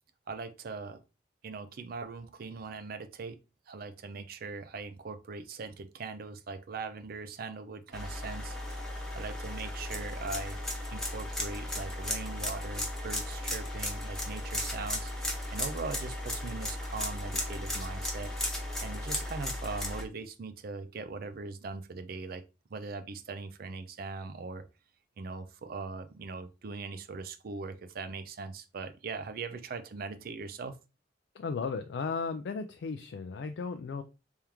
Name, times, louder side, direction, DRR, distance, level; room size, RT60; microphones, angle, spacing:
voice 1, 0.3-1.0 1.4-3.4 3.7-8.6 9.1-10.6 10.9-15.1 15.5-22.4 22.7-24.6 25.2-30.8, right 4 dB, 55° right, 0.5 m, -40 dB
sound 1, 7.9-20.0, left 1 dB, 5° left, 0.8 m, -35 dB
voice 2, 31.3-34.0, left 5 dB, 75° left, 0.4 m, -35 dB
3.5 x 3.4 x 2.9 m
head